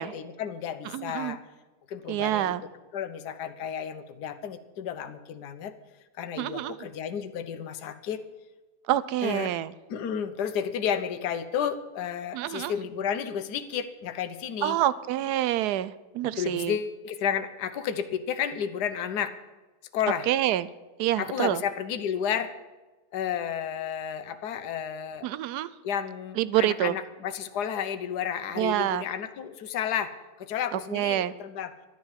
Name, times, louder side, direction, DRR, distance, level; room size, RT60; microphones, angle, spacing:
voice 1, 0.0-1.4 1.9-2.5 2.9-5.7 6.2-8.2 9.2-9.5 9.9-14.8 16.4-19.4 19.9-20.3 21.2-22.5 23.1-25.3 25.8-31.7, left 8 dB, 60° left, 9 dB, 1.4 m, -32 dB
voice 2, 0.9-1.4 2.1-2.6 6.4-6.8 8.9-9.7 12.3-12.7 14.6-16.8 20.3-20.7 21.0-21.6 25.2-25.7 26.4-26.9 28.6-29.0 30.9-31.3, right 13 dB, 70° right, 16 dB, 1.0 m, -27 dB
12.5 x 10.0 x 7.4 m, 1.2 s
omnidirectional pair, 2.1 m